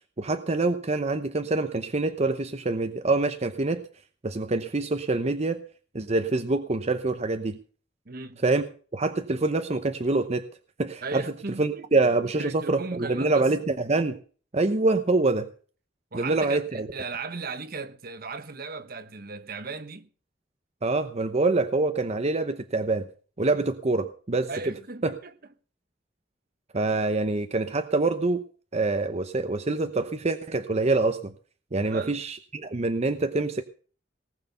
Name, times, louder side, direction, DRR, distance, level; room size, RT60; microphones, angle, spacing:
voice 1, 0.2-3.9 4.2-5.6 5.9-7.6 8.4-10.4 10.8-11.2 11.6-14.2 14.5-15.5 16.1-16.9 20.8-23.1 23.4-24.5 25.0-25.1 26.7-28.4 28.7-31.3 31.7-33.6, right 3 dB, 35° right, 0.8 m, -25 dB
voice 2, 8.0-8.4 11.0-11.9 12.3-13.5 16.1-20.1 24.5-25.3 31.8-32.2, right 4 dB, 55° right, 1.1 m, -37 dB
19.0 x 6.6 x 6.6 m
head